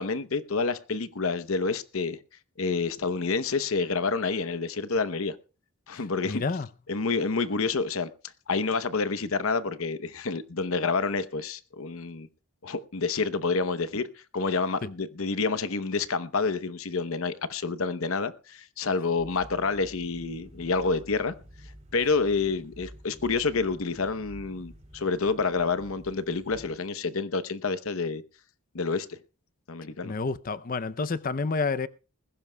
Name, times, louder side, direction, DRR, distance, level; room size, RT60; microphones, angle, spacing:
voice 1, 0.0-2.2 2.6-5.4 5.9-6.4 6.9-8.1 8.5-12.3 12.6-14.1 14.3-21.3 21.9-28.2 28.7-29.2 29.7-30.1, left 4 dB, 70° left, 0.8 m, -28 dB
voice 2, 5.9-6.7 14.8-14.9 30.0-31.9, left 4 dB, 40° left, 0.5 m, -29 dB
sound 1, 19.2-26.8, equal, 30° right, 2.2 m, -49 dB
20.5 x 16.0 x 2.3 m
head